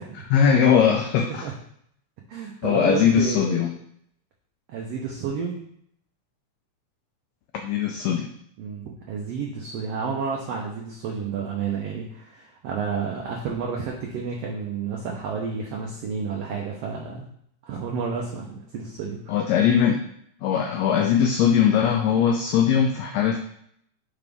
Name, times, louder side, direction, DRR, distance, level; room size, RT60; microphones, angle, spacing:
voice 1, 0.3-1.5 2.6-3.7 7.6-8.3 19.3-20.0 20.4-23.4, left 8 dB, 85° left, 4 dB, 1.5 m, -20 dB
voice 2, 2.3-3.7 4.7-5.6 8.6-17.3 17.6-19.4, right 5 dB, 70° right, -1 dB, 1.5 m, -31 dB
5.5 x 4.9 x 3.5 m, 0.68 s
omnidirectional pair, 3.6 m